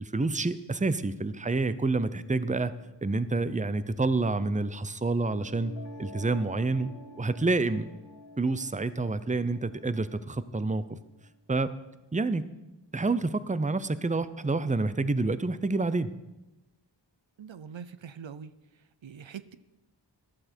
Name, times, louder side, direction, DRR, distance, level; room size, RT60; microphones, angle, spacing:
voice 1, 0.0-2.7 3.0-5.7 6.0-6.9 7.2-7.9 8.4-11.0 11.5-11.7 12.1-12.4 12.9-16.1, right 3 dB, 15° right, 14 dB, 0.7 m, -28 dB
sound 1, 5.2-11.2, left 2 dB, 75° left, 1.6 m, -49 dB
voice 2, 17.4-18.5 19.0-19.5, right 7 dB, 80° right, 14 dB, 0.7 m, -43 dB
14.5 x 12.0 x 4.4 m, 0.99 s
wide cardioid pair, 45°, 45 cm